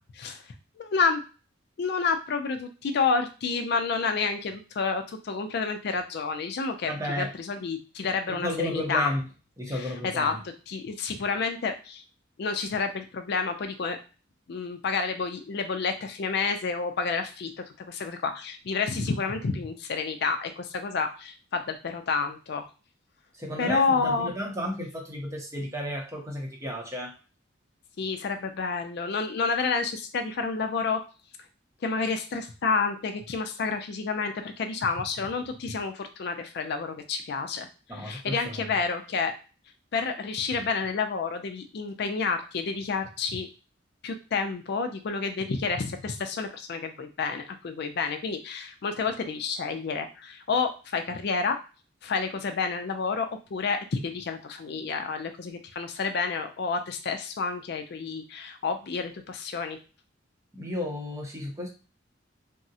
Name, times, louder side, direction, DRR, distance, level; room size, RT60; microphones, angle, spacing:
voice 1, 0.8-1.2 1.8-9.1 9.7-10.3 10.7-12.0 12.4-14.0 14.5-17.5 17.9-22.7 23.6-24.3 28.0-31.0 31.8-37.7 37.9-39.3 39.9-43.5 44.0-51.6 52.0-59.8, left 4 dB, 55° left, 7 dB, 0.4 m, -29 dB
voice 2, 6.8-7.3 8.3-9.2 9.6-10.4 23.3-27.1 37.9-38.6 60.5-61.7, left 1 dB, 15° right, 0 dB, 0.7 m, -33 dB
3.5 x 2.0 x 2.7 m, 0.33 s
head